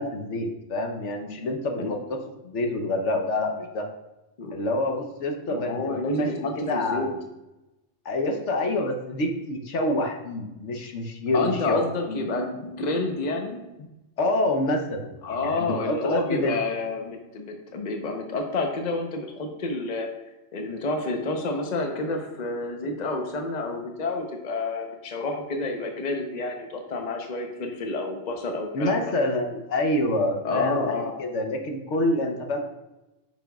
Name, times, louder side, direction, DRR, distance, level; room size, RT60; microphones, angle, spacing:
voice 1, 0.0-2.2 2.4-3.9 4.5-6.3 6.6-7.2 8.0-12.2 14.2-16.5 28.7-32.6, left 1 dB, 70° left, 3 dB, 1.1 m, -27 dB
voice 2, 5.5-7.1 11.3-13.6 15.2-20.1 20.5-29.0 30.4-31.2, left 3 dB, 40° left, 3 dB, 0.9 m, -29 dB
8.6 x 6.0 x 2.3 m, 0.99 s
omnidirectional pair, 1.3 m